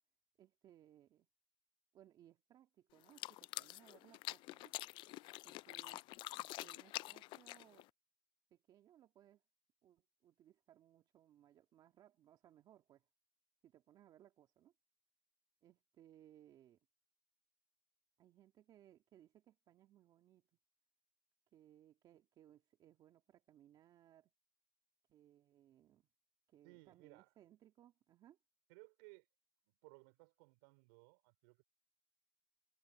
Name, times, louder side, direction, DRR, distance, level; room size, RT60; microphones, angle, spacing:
voice 1, 0.4-1.3 1.9-4.7 5.4-7.9 8.5-9.4 9.8-13.1 13.6-14.7 15.6-16.8 18.2-20.4 21.5-24.3 25.1-26.1 26.5-28.4, right 12 dB, 35° right, 2.2 m, -66 dB
sound 1, 3.0-7.9, left 19 dB, 45° left, 0.4 m, -47 dB
voice 2, 26.6-27.3 28.7-29.3 29.7-31.6, right 30 dB, 65° right, 4.6 m, -62 dB
supercardioid pair, 125°, 12 cm